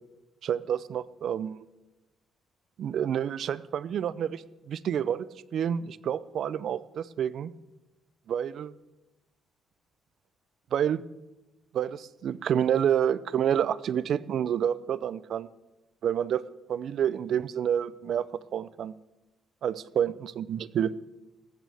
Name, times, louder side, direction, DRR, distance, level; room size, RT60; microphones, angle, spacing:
voice 1, 0.4-1.6 2.8-7.5 8.3-8.7 10.7-11.0 11.7-15.5 16.0-16.4 16.7-18.3 18.5-18.9 19.6-20.9, right 9 dB, 65° right, 17 dB, 0.5 m, -28 dB
18.5 x 15.5 x 3.5 m, 1.0 s
cardioid pair, 90°, 0 cm